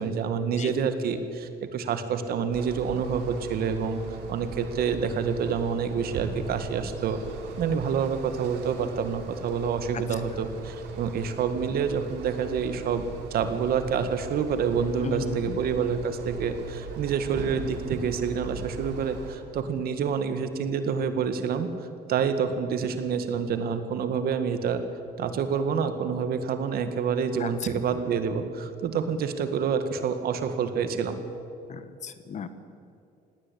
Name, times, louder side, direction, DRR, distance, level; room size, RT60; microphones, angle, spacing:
voice 1, 0.0-4.0 4.3-7.2 7.6-21.7 22.1-24.8 25.2-31.2, right 6 dB, 65° right, 9 dB, 1.9 m, -27 dB
sound 1, 2.5-19.4, right 4 dB, 90° right, 2.9 m, -40 dB
voice 2, 15.0-15.6 27.4-27.5 31.7-32.5, left 6 dB, 45° left, 11 dB, 1.4 m, -35 dB
19.0 x 17.0 x 8.6 m, 2.6 s
cardioid pair, 110°, 17 cm